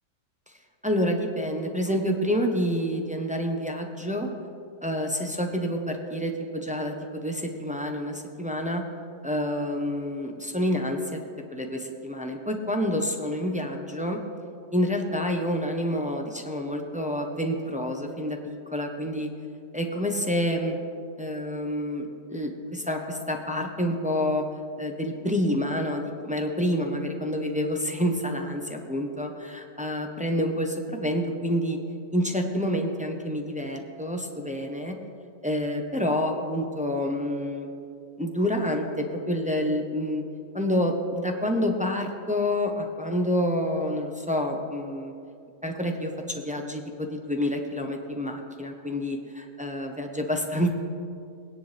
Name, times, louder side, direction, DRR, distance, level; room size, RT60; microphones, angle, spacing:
voice 1, 0.8-4.3 4.8-8.8 9.2-11.2 11.5-14.2 14.7-19.3 19.7-20.8 21.2-24.4 24.8-31.8 32.1-35.0 35.4-37.7 38.2-40.2 40.5-45.1 45.6-50.7, equal, 10° right, 2 dB, 0.5 m, -28 dB
20.5 x 10.0 x 3.4 m, 2.4 s
omnidirectional pair, 1.8 m